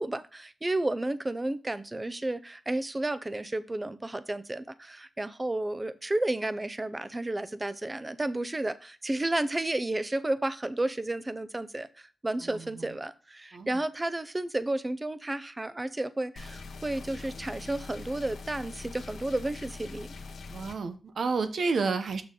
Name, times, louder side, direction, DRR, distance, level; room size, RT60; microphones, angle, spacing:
voice 1, 0.0-20.1, right 2 dB, 25° right, 14 dB, 0.7 m, -32 dB
voice 2, 12.4-12.9 13.5-13.8 20.5-22.2, right 4 dB, 75° right, 9 dB, 0.9 m, -31 dB
sound 1, 16.4-20.8, left 3 dB, 85° left, 1.2 m, -43 dB
6.6 x 6.0 x 3.8 m, 0.35 s
cardioid pair, 65°, 0 cm